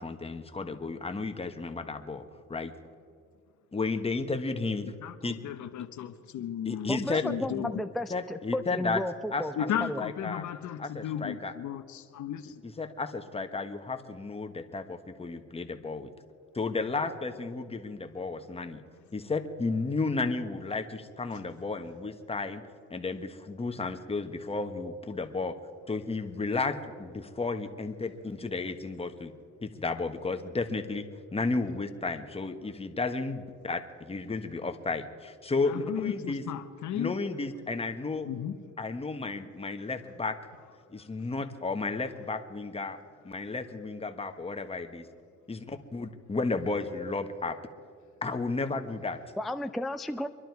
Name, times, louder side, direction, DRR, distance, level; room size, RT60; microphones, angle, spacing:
voice 1, 0.0-2.2 2.5-2.7 3.7-4.9 5.2-5.4 6.6-7.2 8.1-9.0 9.3-9.7 10.0-10.4 10.8-11.5 12.6-16.1 16.5-18.8 19.1-22.6 22.9-25.6 25.9-29.3 29.6-36.4 36.9-38.3 38.8-40.4 40.9-43.0 43.2-45.1 45.5-47.6 48.2-49.2, left 3 dB, 20° left, 6 dB, 1.3 m, -33 dB
voice 2, 4.8-7.8 9.6-12.6 35.6-37.2 38.2-38.6, left 10 dB, 70° left, 10 dB, 1.0 m, -35 dB
voice 3, 6.9-9.5 9.8-10.0 49.4-50.3, left 1 dB, ahead, 8 dB, 0.4 m, -33 dB
25.0 x 11.5 x 4.7 m, 2.2 s
cardioid pair, 90°, 30 cm